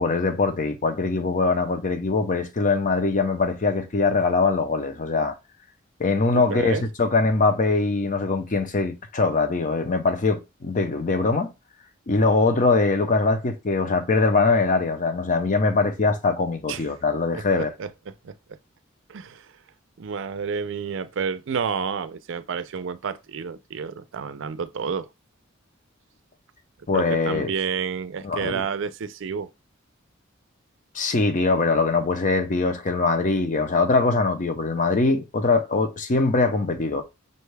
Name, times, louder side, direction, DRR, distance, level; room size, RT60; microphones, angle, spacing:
voice 1, 0.0-5.4 6.0-11.5 12.1-17.7 26.9-27.5 28.2-28.6 30.9-37.0, left 3 dB, 40° left, 0.6 m, -22 dB
voice 2, 6.3-6.9 16.7-16.8 17.3-18.6 19.1-19.5 20.0-25.1 26.9-29.5, right 6 dB, 70° right, 0.4 m, -30 dB
5.4 x 2.2 x 3.2 m
head